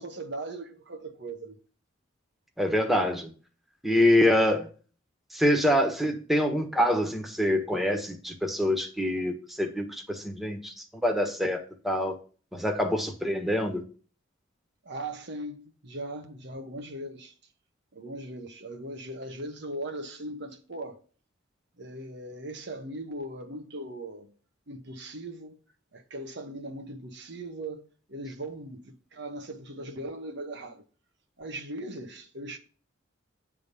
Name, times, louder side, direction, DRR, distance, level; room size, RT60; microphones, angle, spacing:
voice 1, 0.0-1.6 14.8-17.3 17.9-21.0 21.8-24.3 24.7-25.6 25.9-27.8 28.1-30.8 31.4-32.6, right 1 dB, 60° right, 1.2 m, -39 dB
voice 2, 2.6-3.3 3.8-4.7 5.3-10.7 11.0-12.2 12.5-13.8, left 1 dB, ahead, 1.2 m, -25 dB
9.6 x 3.7 x 6.8 m
head